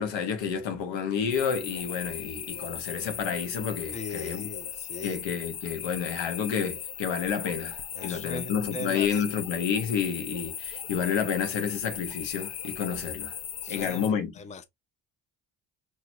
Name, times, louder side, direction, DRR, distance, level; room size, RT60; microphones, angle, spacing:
voice 1, 0.0-4.5 5.0-13.4 13.7-14.3, left 7 dB, 80° left, 1.2 m, -30 dB
sound 1, 1.3-14.1, left 9 dB, 60° left, 0.8 m, -38 dB
voice 2, 3.9-5.2 8.0-9.1 13.6-14.6, left 3 dB, 15° left, 0.6 m, -39 dB
4.5 x 3.0 x 2.6 m
cardioid pair, 85°, 44 cm